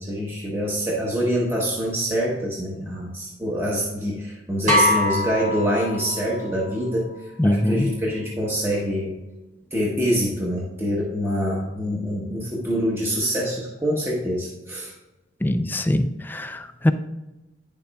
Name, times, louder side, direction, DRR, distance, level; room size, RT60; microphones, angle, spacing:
voice 1, 0.0-9.2 9.7-14.9, equal, 15° right, -4 dB, 1.0 m, -25 dB
sound 1, 4.7-6.5, left 1 dB, 40° right, 1.6 m, -22 dB
voice 2, 7.4-7.9 15.4-16.9, left 1 dB, 10° left, 9 dB, 0.3 m, -22 dB
9.6 x 6.8 x 2.3 m, 1.1 s
head